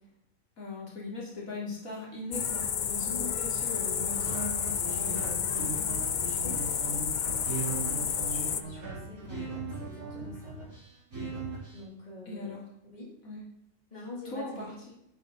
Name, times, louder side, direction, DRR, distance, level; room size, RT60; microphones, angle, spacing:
voice 1, 0.6-6.0 12.3-12.6 13.2-13.4 14.3-14.7, left 3 dB, 75° left, -4 dB, 3.6 m, -40 dB
sound 1, 2.3-8.6, left 7 dB, 50° left, 0.6 m, -31 dB
voice 2, 2.9-3.5 6.4-10.7 11.7-12.6 12.9-13.1 13.9-14.7, left 2 dB, 30° left, -4 dB, 3.7 m, -46 dB
sound 2, 4.0-11.8, right 3 dB, 85° right, 4.8 m, -38 dB
11.5 x 10.0 x 4.2 m, 0.81 s
omnidirectional pair, 1.5 m